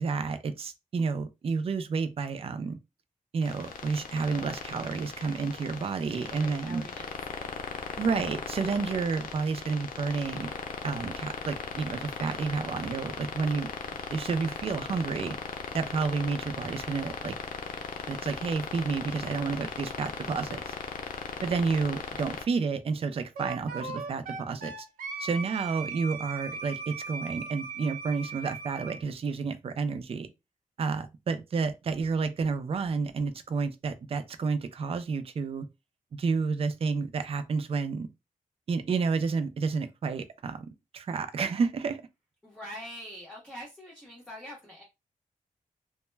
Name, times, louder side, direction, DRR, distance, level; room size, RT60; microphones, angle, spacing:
voice 1, 0.0-2.8 3.3-6.8 8.0-10.5 10.8-13.7 14.1-15.3 15.7-17.3 18.1-20.7 21.4-24.7 25.2-30.3 30.8-35.7 36.1-38.1 38.7-40.7 40.9-42.0, right 5 dB, 45° right, 0.4 m, -30 dB
sound 1, 3.4-22.4, left 5 dB, 85° left, 0.5 m, -38 dB
voice 2, 6.4-7.5 42.4-44.8, equal, 5° left, 0.8 m, -44 dB
Wind instrument woodwind instrument, 23.4-29.0, right 4 dB, 90° right, 0.6 m, -38 dB
2.1 x 2.1 x 3.1 m
wide cardioid pair, 95°, 14 cm